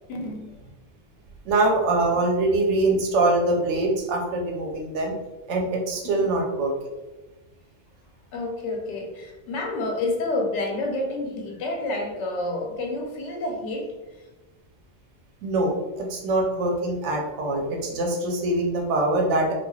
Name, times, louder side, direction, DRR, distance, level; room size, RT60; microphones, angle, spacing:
voice 1, 0.1-0.5 6.2-6.3 8.3-13.9, left 2 dB, 90° left, 1 dB, 0.9 m, -29 dB
voice 2, 1.4-5.1 5.5-6.7 15.4-19.5, right 2 dB, 85° right, 0 dB, 0.9 m, -23 dB
3.1 x 2.4 x 2.2 m, 1.1 s
omnidirectional pair, 1.2 m